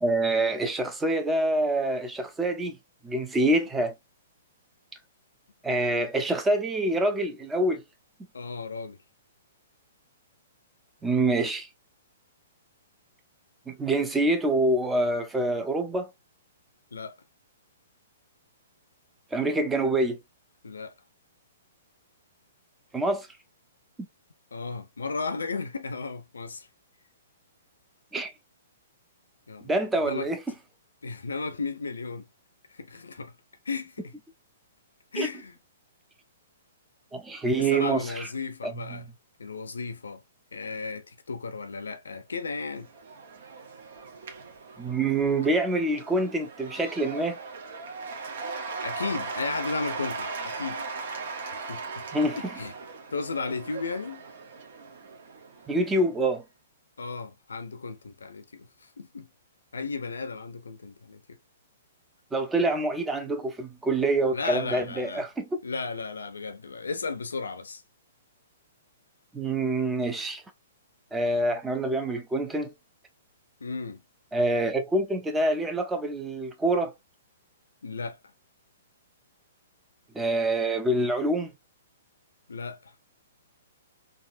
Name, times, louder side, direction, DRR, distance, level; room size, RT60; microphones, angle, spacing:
voice 1, 0.0-2.8 3.0-3.9 5.6-7.8 11.0-11.7 13.7-16.1 19.3-20.2 22.9-23.3 24.0-24.1 28.1-28.3 29.7-30.4 35.2-35.3 37.1-38.3 38.6-39.0 44.8-47.4 52.1-52.4 55.7-56.4 62.3-65.5 69.3-70.4 71.1-72.7 74.3-76.9 80.1-81.5, right 2 dB, 10° right, 0.6 m, -26 dB
voice 2, 8.3-9.0 16.9-17.2 20.6-20.9 24.5-26.7 29.5-29.7 30.0-30.3 31.0-32.3 32.7-33.3 33.7-34.1 35.1-35.5 37.6-39.1 39.4-40.2 40.5-42.9 48.8-50.8 51.5-52.0 52.3-52.7 53.1-54.2 57.0-58.7 59.0-59.3 59.7-61.4 64.3-65.2 65.6-67.8 73.6-74.0 77.8-78.2 82.5-82.9, left 4 dB, 80° left, 0.6 m, -34 dB
Cheering / Applause / Crowd, 42.5-56.0, right 4 dB, 60° right, 0.9 m, -38 dB
3.6 x 2.3 x 2.5 m
hypercardioid pair, 120°, 0 cm